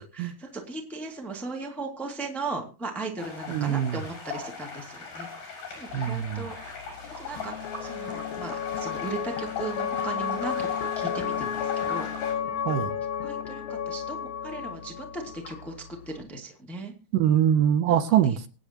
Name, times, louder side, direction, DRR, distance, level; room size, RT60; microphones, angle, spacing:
voice 1, 0.0-6.5 7.0-12.1 13.2-15.7 16.0-16.9 17.9-18.4, right 3 dB, ahead, 1.3 m, -37 dB
sound 1, 3.2-12.3, left 5 dB, 65° left, 7.8 m, -39 dB
voice 2, 3.5-4.0 5.9-6.4 12.7-13.0 17.1-18.5, right 10 dB, 75° right, 2.2 m, -23 dB
sound 2, 5.9-16.2, left 8 dB, 80° left, 3.0 m, -33 dB
25.5 x 8.6 x 2.9 m
omnidirectional pair, 4.1 m